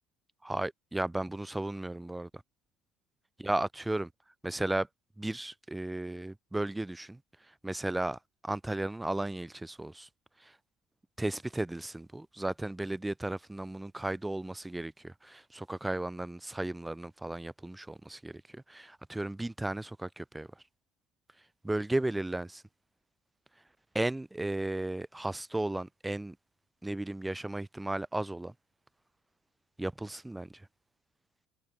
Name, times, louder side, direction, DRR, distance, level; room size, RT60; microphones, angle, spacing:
voice 1, 0.4-2.4 3.4-4.1 4.4-4.9 5.2-10.1 10.4-10.6 11.2-20.5 21.6-22.6 23.9-26.4 26.8-28.5 29.8-30.7, right 1 dB, 10° right, 1.4 m, -35 dB
supercardioid pair, 85°, 0 cm